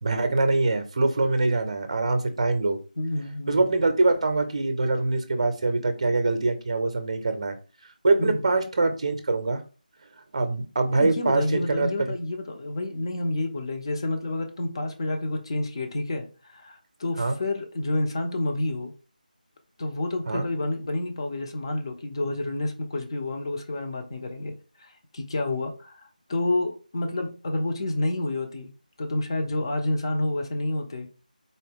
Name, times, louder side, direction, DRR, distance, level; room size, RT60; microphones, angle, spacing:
voice 1, 0.0-2.8 3.5-7.6 8.0-9.6 10.3-11.9 17.2-17.4 20.3-20.4, right 3 dB, 40° right, 8 dB, 0.6 m, -24 dB
voice 2, 3.0-3.7 8.2-8.4 10.9-18.9 19.8-24.5 24.8-26.0 26.3-28.7 29.0-31.1, left 2 dB, 35° left, 4 dB, 0.6 m, -29 dB
4.0 x 2.2 x 3.5 m, 0.35 s
figure-of-eight pair, 165°, 5 cm